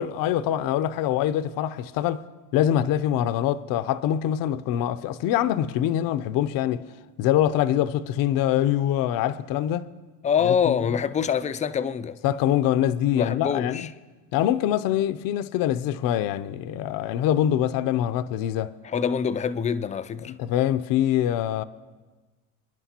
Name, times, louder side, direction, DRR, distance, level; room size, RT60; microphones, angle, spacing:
voice 1, 0.0-2.2 2.5-6.8 7.2-9.9 10.4-10.7 12.2-13.9 14.3-18.7 20.2-21.6, left 11 dB, 65° left, 0.6 m, -24 dB
voice 2, 10.2-12.2 13.1-13.9 18.8-20.3, left 7 dB, 20° left, 0.3 m, -25 dB
28.0 x 10.5 x 2.8 m
cardioid pair, 110°, 37 cm